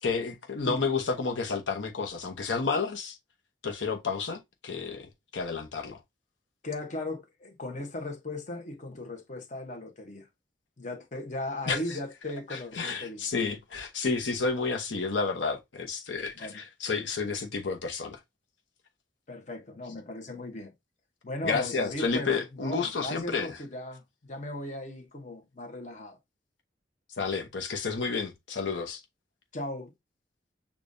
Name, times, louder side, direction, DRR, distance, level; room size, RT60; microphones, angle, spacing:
voice 1, 0.0-3.2 3.6-6.0 11.7-12.0 12.5-18.2 21.4-23.5 27.2-29.0, left 4 dB, 90° left, 0.9 m, -31 dB
voice 2, 6.6-10.3 10.8-13.2 16.3-16.6 19.3-20.7 21.2-26.2 29.5-29.9, left 1 dB, 40° left, 1.0 m, -37 dB
6.8 x 2.4 x 2.6 m
head